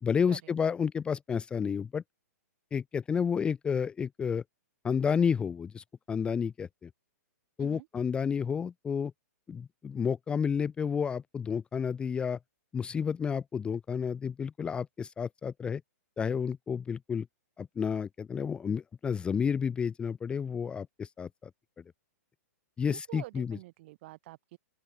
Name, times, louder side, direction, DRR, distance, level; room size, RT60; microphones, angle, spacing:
voice 1, 0.0-2.0 2.7-4.4 4.8-6.9 7.6-9.1 9.5-12.4 12.7-15.8 16.2-17.3 17.6-21.3 22.8-23.6, left 6 dB, 10° left, 0.7 m, -31 dB
voice 2, 22.8-24.6, right 19 dB, 45° right, 4.0 m, -47 dB
open air
hypercardioid pair, 150°, 9 cm